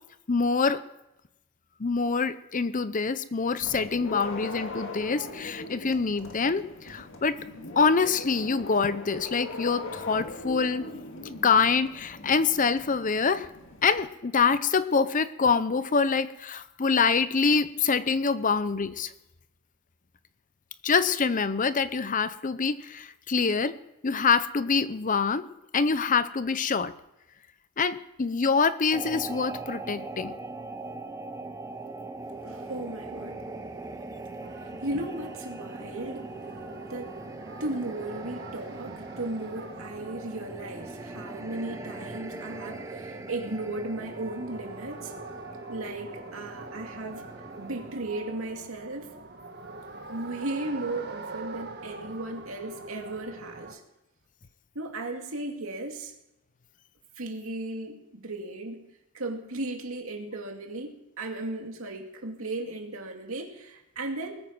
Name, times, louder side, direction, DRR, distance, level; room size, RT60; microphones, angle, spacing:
voice 1, 0.3-0.8 1.8-7.4 7.8-10.9 11.4-13.5 13.8-19.1 20.8-25.5 25.7-26.9 27.8-30.3, left 5 dB, 35° left, 14 dB, 0.6 m, -25 dB
sound 1, 3.6-14.0, left 2 dB, 60° left, 2.1 m, -40 dB
sound 2, 28.9-47.9, right 2 dB, 15° right, 0.9 m, -41 dB
voice 2, 32.4-33.4 34.8-36.4 36.9-37.1 37.6-45.1 45.7-47.2 47.6-49.1 50.1-53.8 54.7-56.1 57.2-58.8 59.1-64.4, right 2 dB, 70° right, 3 dB, 2.5 m, -36 dB
sound 3, 34.4-53.7, right 3 dB, 50° right, 1.5 m, -44 dB
20.0 x 9.1 x 6.1 m, 0.90 s
head